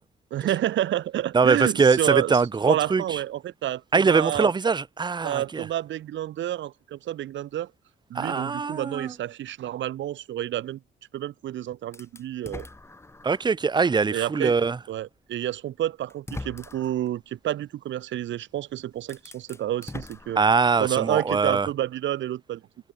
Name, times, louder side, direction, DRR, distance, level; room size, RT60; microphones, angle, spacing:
voice 1, 0.3-2.3 2.7-4.5 5.2-7.7 8.1-10.8 11.1-12.7 14.1-14.6 14.9-20.4 20.8-22.6, right 12 dB, 70° right, 1.2 m, -29 dB
voice 2, 1.3-3.2 3.9-5.6 8.1-9.1 13.2-14.8 20.4-21.7, right 5 dB, 20° right, 0.6 m, -22 dB
sound 1, 11.9-13.6 14.1-14.2 15.4-15.5 16.1-17.1 18.5-18.6 19.0-21.0, left 2 dB, 15° left, 1.4 m, -41 dB
cardioid pair, 90°, 20 cm